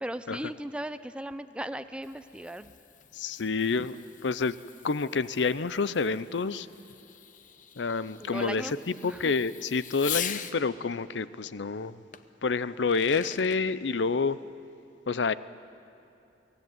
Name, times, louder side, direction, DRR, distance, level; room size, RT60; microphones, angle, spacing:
voice 1, 0.0-2.7 8.2-9.3, right 1 dB, 5° right, 11 dB, 0.5 m, -37 dB
Fireworks, 1.7-10.6 12.1-12.2 12.7-13.6, left 9 dB, 45° left, 0.8 m, -42 dB
voice 2, 3.1-4.6 4.8-6.7 7.8-12.0 12.4-14.4 15.1-15.3, left 4 dB, 80° left, 16 dB, 0.6 m, -28 dB
23.5 x 16.5 x 9.4 m, 2.7 s
head